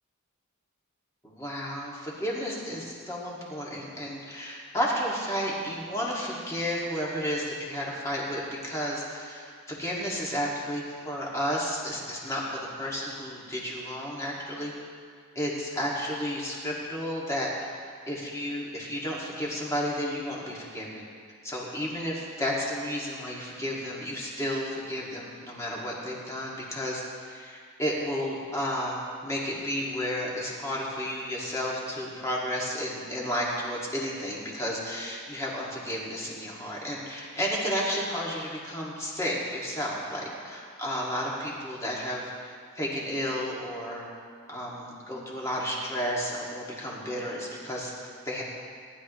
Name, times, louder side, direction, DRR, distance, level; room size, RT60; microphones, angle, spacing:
voice 1, 1.2-14.7 15.4-17.7 18.1-21.0 21.4-44.0 44.5-48.4, equal, 15° left, -4 dB, 2.1 m, -32 dB
18.5 x 11.5 x 3.1 m, 2.1 s
head